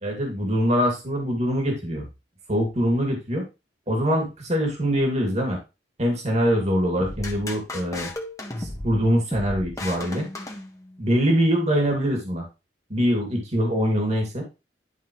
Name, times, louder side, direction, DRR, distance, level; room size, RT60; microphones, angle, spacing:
voice 1, 0.0-2.1 2.5-3.4 3.9-5.6 6.0-8.1 8.6-10.3 11.0-12.4 12.9-14.4, equal, 40° right, 1 dB, 2.3 m, -23 dB
sound 1, 7.0-11.2, left 2 dB, 20° left, 1.3 m, -35 dB
11.0 x 5.0 x 3.1 m, 0.27 s
head